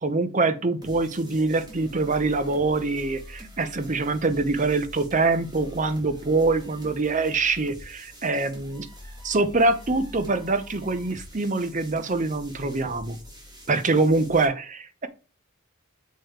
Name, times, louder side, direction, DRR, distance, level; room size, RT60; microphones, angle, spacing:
voice 1, 0.0-8.9 9.2-13.2 13.7-15.1, right 3 dB, 40° right, 11 dB, 0.8 m, -24 dB
sound 1, 0.8-14.5, left 1 dB, 20° right, 2.5 m, -45 dB
7.0 x 4.7 x 4.6 m, 0.33 s
head